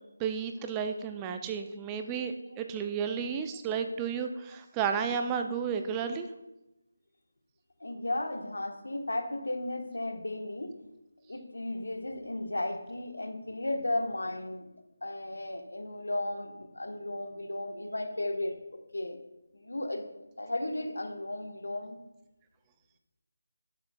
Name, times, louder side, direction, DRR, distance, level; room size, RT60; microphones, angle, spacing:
voice 1, 0.2-6.3, right 6 dB, 15° right, 7 dB, 0.4 m, -32 dB
voice 2, 7.8-10.8 11.3-14.7 15.0-19.2 19.5-20.0 20.4-22.0, left 1 dB, 75° left, 6 dB, 1.1 m, -35 dB
11.5 x 7.3 x 2.2 m, 0.95 s
figure-of-eight pair, 160°, 0 cm